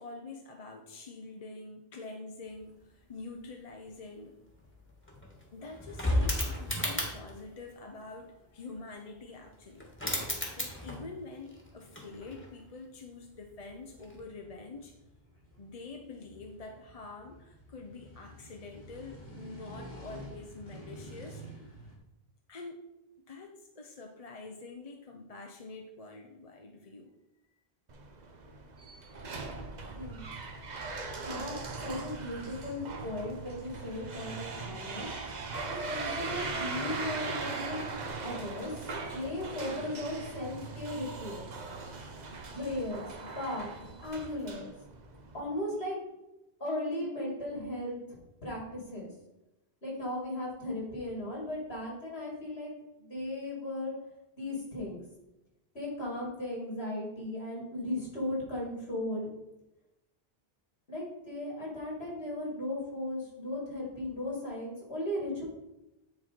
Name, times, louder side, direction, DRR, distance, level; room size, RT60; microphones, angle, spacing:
voice 1, 0.0-4.4 5.5-10.2 10.6-15.0 15.6-21.6 22.5-22.8 23.3-27.1, left 3 dB, 40° left, 2 dB, 0.7 m, -46 dB
sound 1, 2.5-22.0, equal, 65° left, 1.9 m, -53 dB
sound 2, 4.6-4.7 4.9-7.4 9.5-9.6 9.8-11.2 11.5-12.6 14.0-14.2, left 1 dB, 10° left, 1.5 m, -34 dB
sound 3, 27.9-45.4, right 3 dB, 45° right, 0.9 m, -40 dB
voice 2, 30.0-30.3 31.2-31.5 31.8-35.1 35.7-37.9 38.2-38.7 39.1-41.5 42.5-44.7 45.3-46.0 46.6-48.2 48.4-49.1 49.8-52.7 53.0-53.9 54.4-55.0 55.7-59.3 60.9-65.4, left 1 dB, 90° left, -3 dB, 3.1 m, -36 dB
9.6 x 4.3 x 4.3 m, 0.92 s
omnidirectional pair, 1.1 m